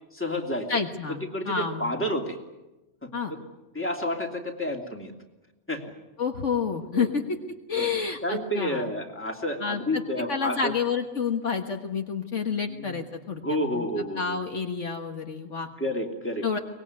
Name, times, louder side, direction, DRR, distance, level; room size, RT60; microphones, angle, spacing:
voice 1, 0.1-0.8 1.1-2.4 3.0-3.1 3.7-5.1 5.7-5.8 6.9-7.1 7.7-7.9 8.2-10.7 12.5-13.0 13.4-14.4 15.8-16.4, equal, 10° left, 2 dB, 2.9 m, -30 dB
voice 2, 0.7-1.2 1.5-1.9 3.1-3.3 6.2-7.2 7.7-8.9 9.6-10.0 10.3-13.4 13.7-13.8 14.1-15.7 16.4-16.6, left 6 dB, 60° left, 4 dB, 1.8 m, -29 dB
24.0 x 20.0 x 9.7 m, 1.0 s
omnidirectional pair, 1.5 m